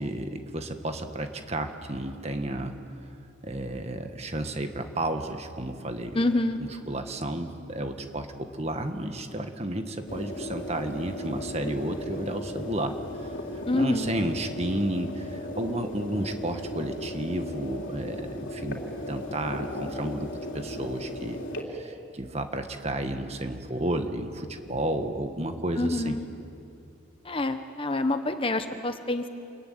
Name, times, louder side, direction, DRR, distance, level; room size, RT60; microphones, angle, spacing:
voice 1, 0.0-2.8 3.4-6.2 6.6-13.0 13.7-21.4 21.7-26.2, right 1 dB, 30° right, 6 dB, 1.7 m, -32 dB
voice 2, 6.1-6.6 13.7-14.1 25.8-26.2 27.2-29.3, left 2 dB, 25° left, 8 dB, 1.1 m, -27 dB
sound 1, 10.1-21.6, left 1 dB, 75° left, 3.3 m, -37 dB
27.5 x 22.0 x 9.6 m, 2.6 s
head